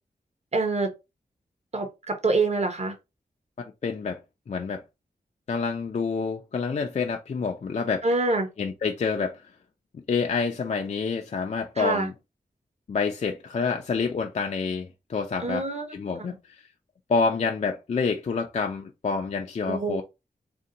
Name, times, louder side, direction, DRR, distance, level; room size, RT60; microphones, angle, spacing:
voice 1, 0.5-0.9 1.7-2.9 8.0-8.5 11.8-12.1 15.4-15.9 19.7-20.0, right 3 dB, 40° right, 0.8 m, -25 dB
voice 2, 3.8-4.2 4.5-4.8 5.5-8.1 8.6-9.4 9.9-12.1 12.9-15.7 15.9-16.6 17.1-20.0, left 5 dB, 45° left, 0.4 m, -28 dB
2.7 x 2.2 x 3.8 m
wide cardioid pair, 110°, 17 cm